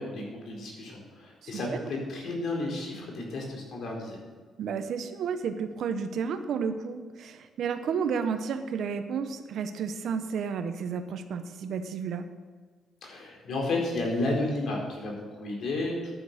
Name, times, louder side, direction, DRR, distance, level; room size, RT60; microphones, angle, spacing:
voice 1, 0.0-4.2 13.0-16.1, left 2 dB, 65° left, 0 dB, 4.2 m, -32 dB
voice 2, 1.4-1.8 4.6-12.3, right 6 dB, 70° right, 9 dB, 1.1 m, -32 dB
11.0 x 9.5 x 6.6 m, 1.5 s
cardioid pair, 90°, 0 cm